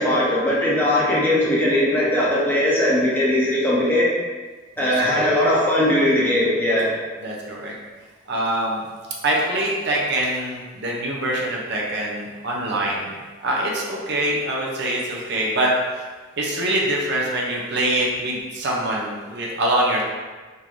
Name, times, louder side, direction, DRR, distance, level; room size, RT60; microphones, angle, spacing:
voice 1, 0.0-4.1 4.8-6.9, left 1 dB, 10° left, -6 dB, 0.6 m, -19 dB
voice 2, 4.8-5.3 7.2-7.7 8.3-8.8 9.2-13.1 13.4-15.7 16.4-20.0, right 1 dB, 55° right, -3 dB, 0.6 m, -24 dB
3.7 x 2.5 x 3.0 m, 1.4 s
head